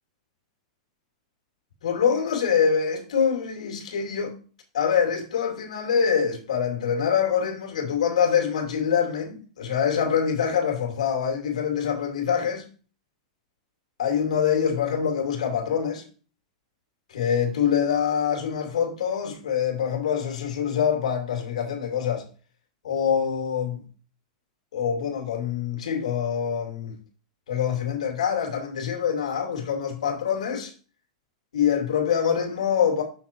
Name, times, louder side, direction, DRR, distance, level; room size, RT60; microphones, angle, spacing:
voice 1, 1.8-4.3 4.7-12.6 14.0-16.0 17.1-22.3 22.8-23.9 24.7-27.0 27.5-30.7 31.5-33.0, left 7 dB, 85° left, 2.6 m, -25 dB
6.6 x 6.0 x 4.5 m
supercardioid pair, 145°, 4 cm